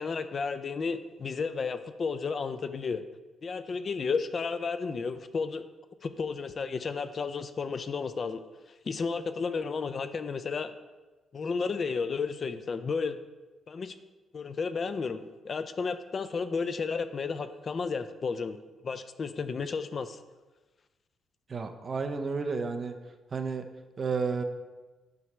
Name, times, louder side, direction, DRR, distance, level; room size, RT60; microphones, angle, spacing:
voice 1, 0.0-3.0 3.4-5.7 6.0-8.4 8.8-10.7 11.3-13.1 13.7-14.0 14.3-18.6 18.8-20.2, left 5 dB, 40° left, 11 dB, 0.4 m, -32 dB
voice 2, 21.5-23.0 23.3-23.7 24.0-24.4, right 4 dB, 35° right, 7 dB, 0.6 m, -31 dB
9.3 x 3.3 x 5.9 m, 1.2 s
cardioid pair, 130°, 0 cm